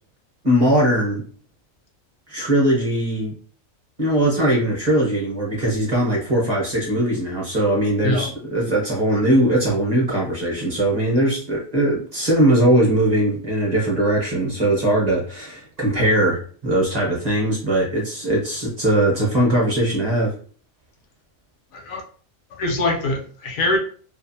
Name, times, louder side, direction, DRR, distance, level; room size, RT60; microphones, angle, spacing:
voice 1, 0.4-1.2 2.3-3.3 4.0-20.3, right 1 dB, 35° right, 0.8 m, -20 dB
voice 2, 22.6-23.8, left 2 dB, 80° left, 1.1 m, -23 dB
2.6 x 2.4 x 2.6 m
omnidirectional pair, 1.4 m